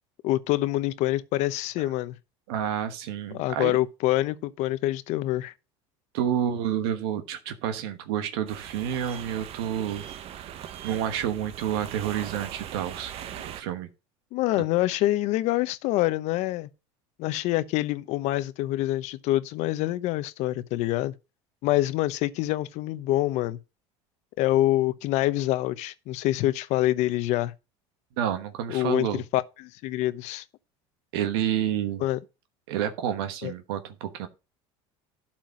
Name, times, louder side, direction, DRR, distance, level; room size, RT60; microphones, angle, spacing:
voice 1, 0.2-2.2 3.3-5.5 14.3-16.7 17.2-21.1 21.6-23.6 24.4-27.5 28.7-30.4 32.0-32.2 33.4-33.5, left 16 dB, 65° left, 0.9 m, -26 dB
voice 2, 2.5-3.8 6.1-10.0 10.3-10.5 10.8-13.1 13.4-13.9 28.2-29.2 31.1-32.0 32.7-34.3, right 10 dB, 85° right, 1.2 m, -29 dB
sound 1, 8.5-13.6, right 10 dB, 50° right, 1.0 m, -40 dB
12.0 x 4.5 x 5.2 m
supercardioid pair, 110°, 13 cm